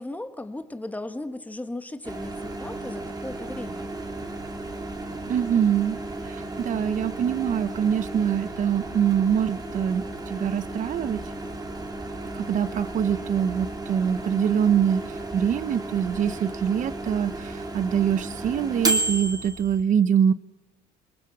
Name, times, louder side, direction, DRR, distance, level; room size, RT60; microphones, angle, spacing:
voice 1, 0.0-3.9, left 2 dB, 10° left, 9 dB, 1.7 m, -36 dB
Microwave oven, 2.0-19.8, right 2 dB, 25° right, 2.9 m, -33 dB
voice 2, 5.3-6.0 6.3-11.2 12.3-20.3, right 8 dB, 50° right, 15 dB, 0.9 m, -24 dB
27.0 x 21.5 x 7.3 m, 1.1 s
cardioid pair, 110°, 17 cm